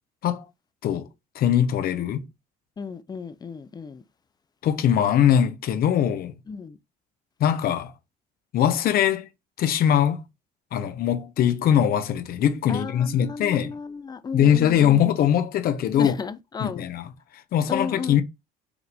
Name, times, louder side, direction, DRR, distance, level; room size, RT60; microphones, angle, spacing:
voice 1, 1.3-2.3 4.6-6.3 7.4-7.9 8.5-9.3 9.6-10.2 10.7-13.7 14.3-16.2 16.6-17.1 17.5-18.2, left 9 dB, 60° left, 0.7 m, -21 dB
voice 2, 2.8-4.0 6.5-6.8 12.7-15.0 16.0-16.8 17.7-18.2, left 5 dB, 25° left, 0.5 m, -34 dB
5.0 x 2.5 x 3.4 m
cardioid pair, 110°, 17 cm